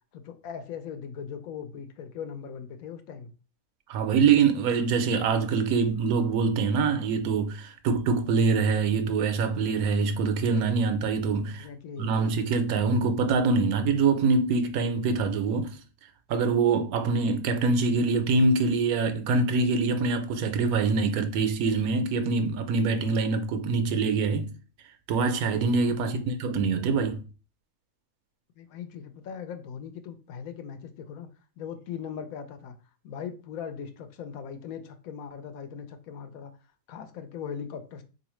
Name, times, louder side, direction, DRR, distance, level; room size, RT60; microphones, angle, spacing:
voice 1, 0.1-3.3 11.4-12.1 25.8-26.2 28.6-31.3 31.6-32.8 33.0-36.5 36.9-38.0, left 7 dB, 80° left, 1.0 m, -39 dB
voice 2, 3.9-11.7 12.0-15.8 16.3-24.5 25.1-27.2, right 4 dB, 85° right, 1.1 m, -24 dB
3.8 x 2.8 x 3.0 m
omnidirectional pair, 1.5 m